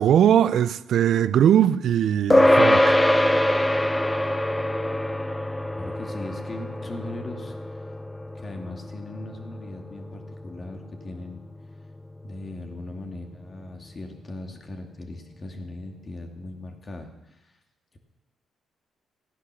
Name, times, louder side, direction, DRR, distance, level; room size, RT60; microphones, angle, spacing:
voice 1, 0.0-3.0, right 10 dB, 70° right, 0.4 m, -20 dB
sound 1, 2.3-12.0, left 1 dB, 10° left, 0.8 m, -24 dB
voice 2, 5.8-7.9 8.3-11.4 12.2-17.6, left 2 dB, 35° left, 2.4 m, -39 dB
15.5 x 9.9 x 7.0 m
cardioid pair, 90°, 0 cm